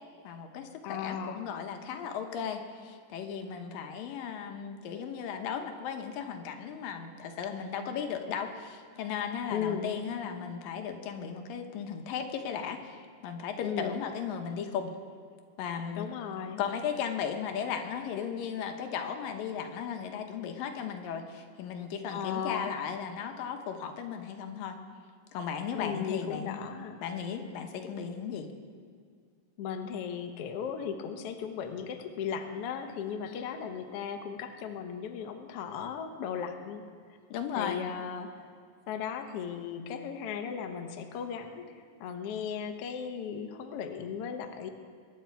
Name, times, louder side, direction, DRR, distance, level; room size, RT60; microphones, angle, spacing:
voice 1, 0.2-13.0 13.2-14.9 15.6-16.1 16.6-24.8 25.3-26.6 27.0-28.5 33.3-33.6 37.3-37.9, left 7 dB, 90° left, 5 dB, 2.8 m, -36 dB
voice 2, 0.8-1.4 9.5-10.0 13.6-14.0 16.0-16.6 22.1-22.7 25.7-27.0 29.6-36.8 37.5-38.5 38.9-44.7, left 7 dB, 65° left, 5 dB, 1.5 m, -36 dB
22.0 x 10.5 x 4.6 m, 2.1 s
omnidirectional pair, 3.9 m